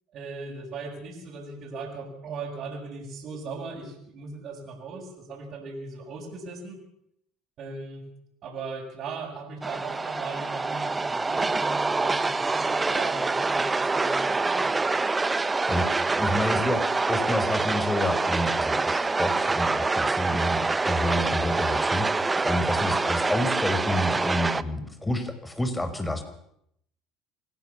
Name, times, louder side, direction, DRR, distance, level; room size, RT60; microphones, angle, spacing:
voice 1, 0.1-6.8 7.6-8.1 8.4-14.9, right 4 dB, 55° right, -4 dB, 7.0 m, -38 dB
sound 1, 9.6-24.6, right 3 dB, 20° right, 1.1 m, -26 dB
voice 2, 15.7-26.2, left 1 dB, 10° left, 9 dB, 5.1 m, -29 dB
27.5 x 17.5 x 7.2 m, 0.74 s
hypercardioid pair, 75°, 0 cm